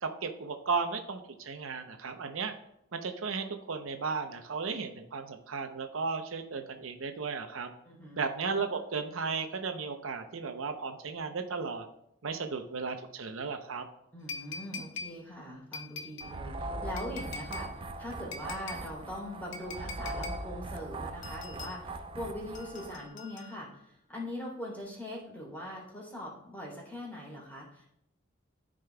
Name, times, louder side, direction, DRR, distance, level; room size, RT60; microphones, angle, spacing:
voice 1, 0.0-2.5 2.9-7.7 8.2-11.9 12.2-13.8, right 5 dB, 80° right, 6 dB, 0.7 m, -35 dB
voice 2, 7.8-8.2 14.1-27.9, left 1 dB, 10° left, -4 dB, 3.1 m, -42 dB
sound 1, 14.3-15.2 15.7-16.3 17.0-17.7 18.3-18.9 19.5-20.4 21.2-21.8 22.5-23.8 24.8-24.9, left 4 dB, 65° left, 0.9 m, -43 dB
sound 2, 16.2-23.1, right 2 dB, 25° right, 0.4 m, -40 dB
14.5 x 5.1 x 2.3 m, 0.79 s
head